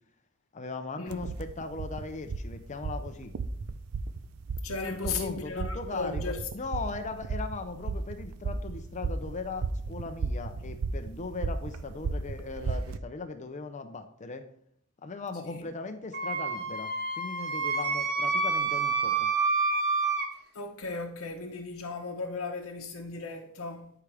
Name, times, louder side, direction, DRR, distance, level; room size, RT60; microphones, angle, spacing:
voice 1, 0.5-3.3 4.8-14.5 15.0-19.3, left 3 dB, 35° left, 0.6 m, -38 dB
sound 1, 1.1-13.0, right 3 dB, 70° right, 0.5 m, -35 dB
voice 2, 4.6-6.5 15.4-15.7 20.5-23.9, left 3 dB, 70° left, 0.9 m, -36 dB
Wind instrument woodwind instrument, 16.1-20.3, right 4 dB, 50° right, 1.2 m, -28 dB
13.5 x 4.9 x 3.4 m
head